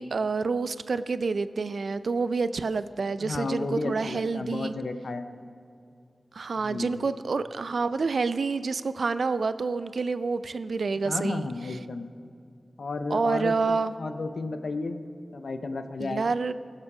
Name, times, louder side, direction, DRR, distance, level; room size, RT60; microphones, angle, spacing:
voice 1, 0.0-4.7 6.3-11.5 13.1-13.9 16.0-16.5, right 4 dB, 75° right, 14 dB, 0.4 m, -28 dB
voice 2, 3.2-5.4 6.6-7.0 11.0-12.1 12.8-15.0 15.3-16.3, left 3 dB, 75° left, 9 dB, 0.6 m, -33 dB
19.0 x 7.4 x 4.9 m, 2.4 s
wide cardioid pair, 70°, 0 cm